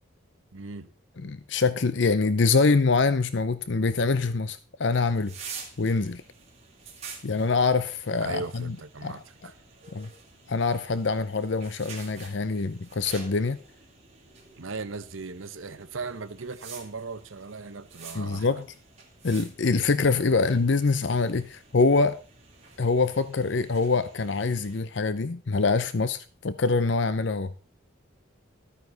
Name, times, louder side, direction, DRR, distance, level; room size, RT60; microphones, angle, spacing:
voice 1, 0.5-0.9 8.2-9.5 14.6-18.6, right 4 dB, 80° right, 1.0 m, -38 dB
voice 2, 1.2-5.4 5.8-6.2 7.2-8.8 9.0-9.2 9.9-10.1 10.5-13.6 18.1-18.6 19.2-22.2 22.8-27.5, left 4 dB, 60° left, 0.6 m, -24 dB
sound 1, 4.9-24.8, right 5 dB, 30° right, 3.1 m, -48 dB
13.5 x 9.4 x 4.0 m
head